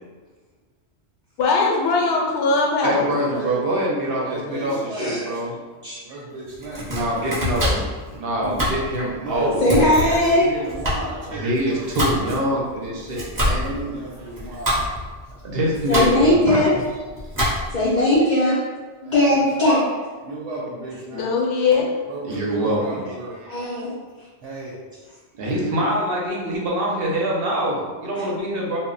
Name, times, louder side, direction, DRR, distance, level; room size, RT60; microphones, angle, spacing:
voice 1, 1.4-3.1 21.1-21.8, left 4 dB, 75° left, -1 dB, 0.9 m, -20 dB
voice 2, 2.8-5.6 6.8-9.7 11.2-14.3 14.8-14.9 15.4-16.6 22.2-23.0 23.4-23.5 25.4-28.8, right 1 dB, 60° right, -3 dB, 0.7 m, -25 dB
voice 3, 4.2-5.4 6.0-7.3 9.1-9.7 10.0-12.3 13.5-15.0 19.0-19.7 20.2-21.3 22.1-23.4 24.4-24.8 25.6-25.8, right 2 dB, 85° right, -6 dB, 0.9 m, -34 dB
Domestic sounds home sounds, 6.5-17.9, equal, 20° right, 0.6 m, -27 dB
voice 4, 9.6-10.5 15.9-16.7 17.7-18.6 19.1-19.8 23.5-23.9, left 1 dB, 50° left, -8 dB, 0.6 m, -18 dB
2.1 x 2.0 x 3.7 m, 1.4 s
omnidirectional pair, 1.2 m